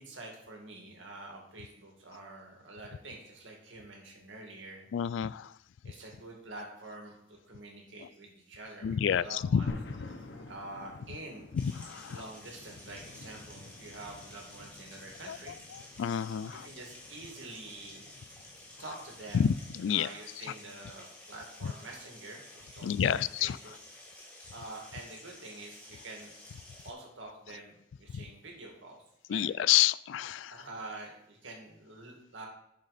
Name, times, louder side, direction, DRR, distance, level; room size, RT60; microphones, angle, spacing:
voice 1, 0.0-4.9 5.8-9.7 10.1-11.5 12.1-15.6 16.5-18.1 18.8-19.5 19.9-23.7 24.5-26.3 26.8-29.0 29.3-29.4 30.5-32.5, right 2 dB, 90° right, 0 dB, 2.2 m, -47 dB
voice 2, 4.9-5.5 8.8-9.7 11.6-12.2 15.3-15.4 15.7-16.7 19.3-20.1 21.6-21.7 22.8-23.6 28.1-28.3 29.3-30.5, left 9 dB, 90° left, 19 dB, 0.3 m, -29 dB
sound 1, 9.7-19.8, left 2 dB, 70° left, 0.8 m, -49 dB
sound 2, 11.6-26.9, left 1 dB, 5° left, 1.7 m, -52 dB
8.1 x 6.6 x 4.2 m, 0.81 s
head